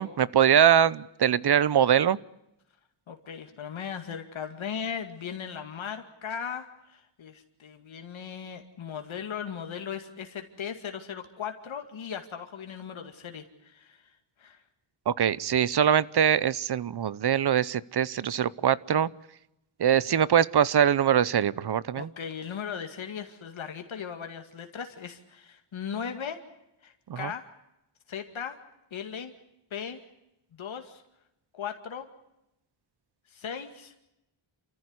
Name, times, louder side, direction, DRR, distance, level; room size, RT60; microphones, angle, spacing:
voice 1, 0.0-2.2 15.1-19.1 19.8-22.1 27.1-27.3, right 9 dB, 55° right, 20 dB, 0.8 m, -23 dB
voice 2, 3.1-14.1 14.4-14.6 22.0-26.4 26.8-27.5 28.1-28.6 28.9-29.3 29.7-30.0 30.5-31.0 31.5-32.1 33.3-34.0, left 7 dB, 75° left, 6 dB, 2.3 m, -38 dB
28.5 x 14.5 x 9.7 m, 0.88 s
wide cardioid pair, 130°, 48 cm